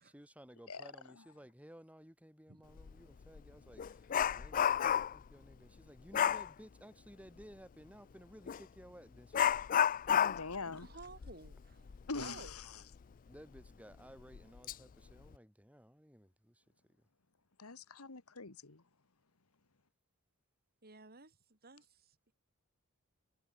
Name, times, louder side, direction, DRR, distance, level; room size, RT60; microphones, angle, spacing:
voice 1, 0.1-9.3 9.5-9.6 13.3-16.6, equal, 5° right, 7.7 m, -57 dB
Dog, 2.8-2.9 3.3-5.3 6.1-6.5 8.5-8.6 9.3-12.6 12.9-13.0 13.6-13.7 14.3-14.7 15.1-15.3, left 9 dB, 40° left, 0.4 m, -32 dB
voice 2, 10.2-10.9 12.1-12.8 17.6-18.8, left 4 dB, 75° left, 1.6 m, -43 dB
voice 3, 10.8-12.5 12.8-12.9 20.8-22.3, right 3 dB, 45° right, 3.5 m, -55 dB
head